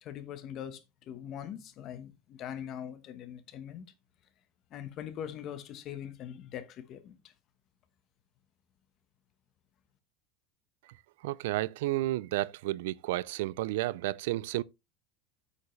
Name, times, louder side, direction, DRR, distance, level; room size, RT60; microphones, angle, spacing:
voice 1, 0.0-3.8 4.7-7.3, left 9 dB, 35° left, 1.1 m, -42 dB
voice 2, 11.2-14.6, right 17 dB, 85° right, 0.4 m, -31 dB
8.4 x 7.0 x 3.2 m
supercardioid pair, 165°, 0 cm